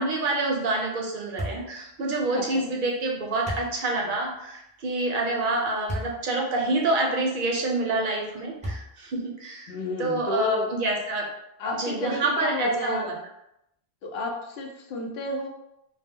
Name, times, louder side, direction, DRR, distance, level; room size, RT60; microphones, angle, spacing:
voice 1, 0.0-9.7 10.0-11.3 11.8-13.1, right 2 dB, 60° right, 0 dB, 0.7 m, -27 dB
sound 1, 1.4-1.7 3.4-3.7 5.9-6.2 6.8-6.9 8.6-9.1, equal, 10° right, 0.4 m, -32 dB
voice 2, 2.3-2.6 9.7-10.7 11.6-13.1 14.0-15.5, left 2 dB, 80° left, 1 dB, 0.8 m, -31 dB
2.1 x 2.0 x 3.4 m, 0.82 s
omnidirectional pair, 1.0 m